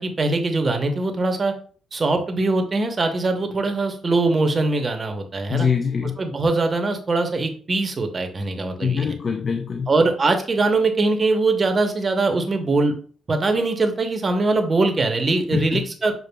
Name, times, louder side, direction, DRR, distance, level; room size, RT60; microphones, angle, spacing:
voice 1, 0.0-1.5 1.9-5.7 6.2-9.1 9.9-12.9 13.3-16.1, right 3 dB, 35° right, 0.7 m, -22 dB
voice 2, 5.5-6.2 8.8-9.9 15.5-15.8, left 6 dB, 40° left, 0.4 m, -23 dB
6.6 x 2.4 x 2.2 m
cardioid pair, 90°, 0 cm